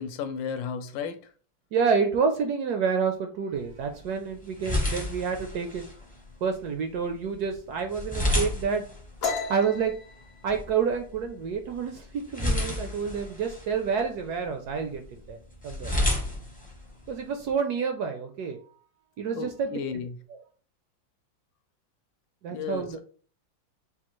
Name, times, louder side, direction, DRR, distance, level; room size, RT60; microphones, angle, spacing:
voice 1, 0.0-1.3 19.4-20.2 22.5-23.0, left 6 dB, 80° left, 8 dB, 1.3 m, -34 dB
voice 2, 1.7-5.9 6.4-8.8 9.5-9.9 10.4-15.0 15.3-15.9 17.1-18.6 19.2-19.8 22.4-23.0, right 6 dB, 75° right, 5 dB, 0.9 m, -28 dB
sound 1, 3.5-17.5, left 1 dB, 15° left, 0.3 m, -33 dB
sound 2, 9.2-12.6 13.0-13.3 13.7-14.2 14.5-15.2, left 5 dB, 60° left, 0.6 m, -36 dB
5.8 x 2.4 x 3.0 m, 0.43 s
omnidirectional pair, 2.1 m